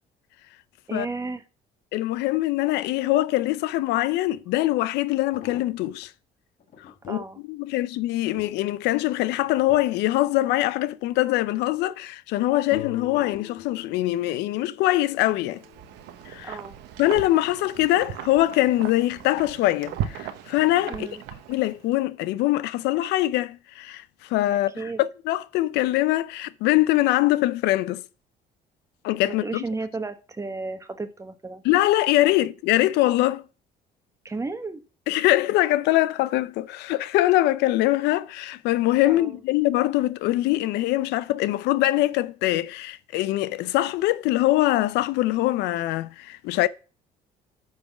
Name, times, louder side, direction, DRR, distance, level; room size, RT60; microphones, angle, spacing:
voice 1, 0.9-1.4 7.1-7.4 16.4-16.8 20.9-21.2 24.8-25.0 29.3-31.6 34.2-34.8 39.0-39.3, right 3 dB, 15° right, 1.0 m, -33 dB
voice 2, 1.9-6.1 7.1-15.6 16.3-16.6 17.0-21.1 21.5-28.0 29.0-29.6 31.6-33.4 35.1-46.7, left 16 dB, 85° left, 0.5 m, -23 dB
sound 1, 4.3-4.4 5.1-6.1 6.6-7.3 7.8-11.2 11.6-12.1 12.7-14.1 14.9-15.2 15.5-15.6, left 6 dB, 50° left, 1.5 m, -49 dB
sound 2, 12.7-16.3, left 14 dB, 70° left, 0.9 m, -42 dB
Wind, 15.4-21.9, right 10 dB, 90° right, 1.0 m, -37 dB
8.5 x 4.1 x 5.9 m
cardioid pair, 110°, 17 cm